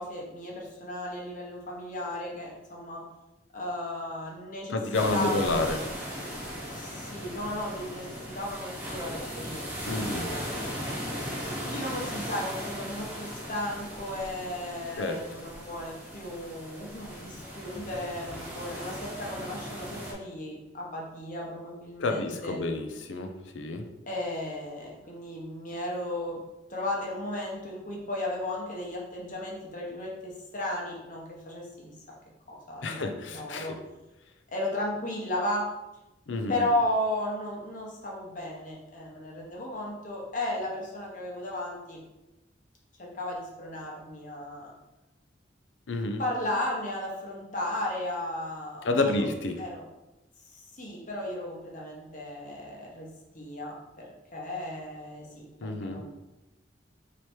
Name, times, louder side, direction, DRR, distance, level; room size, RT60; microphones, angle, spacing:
voice 1, 0.0-3.0 3.5-4.8 5.1-5.8 6.7-10.5 11.4-22.6 24.1-26.4 26.7-31.9 32.5-33.7 34.5-35.7 36.5-42.0 43.0-44.7 46.2-49.2 49.6-49.8 50.5-53.1 53.3-56.1, left 1 dB, 45° left, -3 dB, 1.0 m, -35 dB
voice 2, 4.7-5.8 9.8-10.3 15.0-15.2 22.0-23.9 32.8-33.8 36.3-36.6 45.9-46.2 48.8-49.6 55.6-56.0, left 2 dB, 85° left, 6 dB, 0.5 m, -29 dB
sound 1, 4.9-20.1, equal, 10° right, 0.9 m, -38 dB
3.2 x 3.0 x 4.3 m, 0.99 s
head